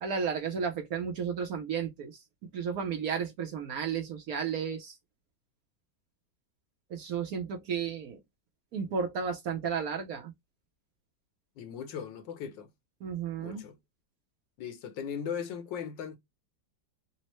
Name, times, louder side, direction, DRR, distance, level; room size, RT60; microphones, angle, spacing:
voice 1, 0.0-2.2 2.5-4.9 6.9-8.2 8.7-10.3 13.0-13.6, right 6 dB, 65° right, 1.0 m, -33 dB
voice 2, 11.6-12.7 13.4-13.8 14.6-16.2, left 7 dB, 80° left, 1.5 m, -38 dB
4.2 x 2.1 x 2.9 m
omnidirectional pair, 2.0 m